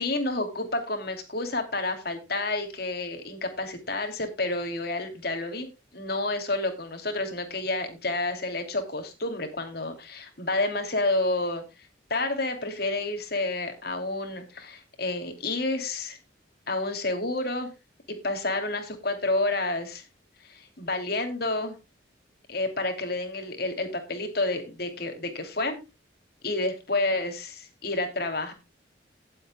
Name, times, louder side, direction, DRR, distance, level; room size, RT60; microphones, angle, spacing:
voice 1, 0.0-5.7 5.9-11.6 12.1-16.2 16.7-17.7 18.1-20.0 20.4-21.8 22.5-25.8 26.4-28.5, left 2 dB, 55° left, 5 dB, 2.9 m, -29 dB
18.5 x 7.9 x 2.2 m, 0.25 s
head